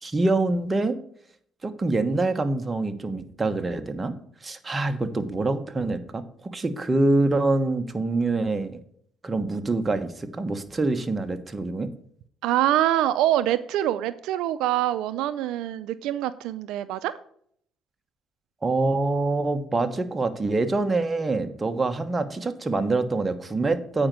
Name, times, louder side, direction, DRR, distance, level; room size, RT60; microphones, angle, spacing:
voice 1, 0.0-1.0 1.6-4.1 4.4-6.2 6.5-8.8 9.2-11.9 18.6-24.1, right 2 dB, 20° right, 7 dB, 1.2 m, -25 dB
voice 2, 12.4-17.1, right 13 dB, 85° right, 13 dB, 0.4 m, -25 dB
8.6 x 5.1 x 6.0 m, 0.64 s
cardioid pair, 85°, 0 cm